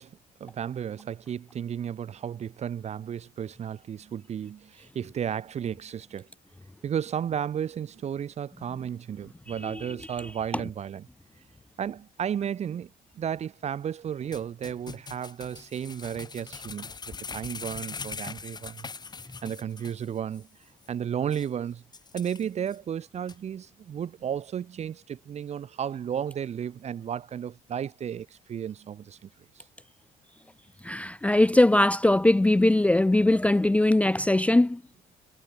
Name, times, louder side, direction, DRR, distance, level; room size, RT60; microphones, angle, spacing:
voice 1, 0.0-6.3 6.8-11.0 11.8-18.9 19.4-20.5 20.9-21.8 22.1-29.3, right 8 dB, 40° right, 0.8 m, -33 dB
sound 1, 14.3-20.1 20.3-20.4 20.8-20.9 21.3-21.5 21.9-22.8 23.3-23.4, left 5 dB, 25° left, 1.3 m, -41 dB
voice 2, 30.8-34.8, left 1 dB, 10° left, 0.5 m, -21 dB
cardioid pair, 110°, 17 cm